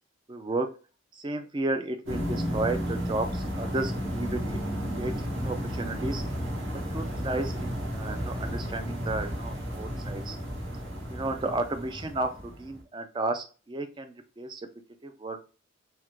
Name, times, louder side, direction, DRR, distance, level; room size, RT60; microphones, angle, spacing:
voice 1, 0.3-0.7 1.1-5.1 5.4-6.2 6.9-10.4 11.1-14.7 15.0-15.4, right 2 dB, 20° right, 7 dB, 0.3 m, -33 dB
sound 1, 2.1-12.8, equal, 70° right, 1.3 m, -33 dB
3.5 x 2.1 x 3.0 m, 0.35 s
head